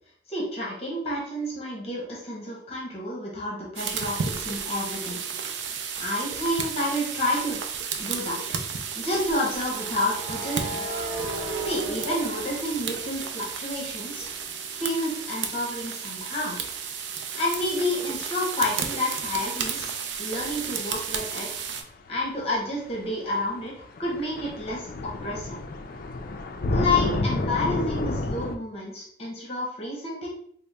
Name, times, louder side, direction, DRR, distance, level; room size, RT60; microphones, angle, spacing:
voice 1, 0.3-5.2 6.0-7.6 8.0-8.4 8.9-10.8 11.6-14.3 14.7-16.6 17.3-19.9 20.2-21.5 22.1-25.6 26.7-30.3, left 1 dB, 35° left, -4 dB, 0.9 m, -30 dB
sound 1, 3.8-21.8, right 6 dB, 75° right, 0.4 m, -33 dB
sound 2, 6.3-6.5 9.6-13.5 13.9-17.4, right 2 dB, 30° right, 1.4 m, -37 dB
sound 3, 22.4-22.5 23.7-23.8 24.0-28.5, left 2 dB, 50° left, 0.3 m, -29 dB
3.9 x 2.1 x 3.3 m, 0.62 s
head